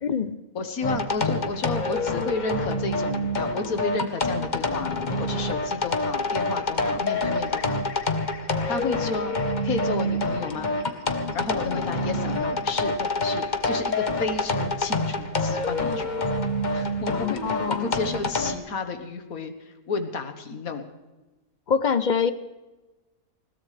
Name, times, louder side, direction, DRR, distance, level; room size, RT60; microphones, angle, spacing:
voice 1, 0.0-0.4 17.1-18.0 21.7-22.3, left 6 dB, 50° left, 13 dB, 0.5 m, -25 dB
voice 2, 0.5-7.8 8.7-9.4 9.6-10.7 11.3-16.1 16.7-20.8, left 4 dB, 80° left, 8 dB, 1.8 m, -32 dB
sound 1, 0.8-18.6, left 2 dB, 35° left, 1.2 m, -27 dB
21.0 x 16.5 x 3.3 m, 1.1 s
omnidirectional pair, 1.5 m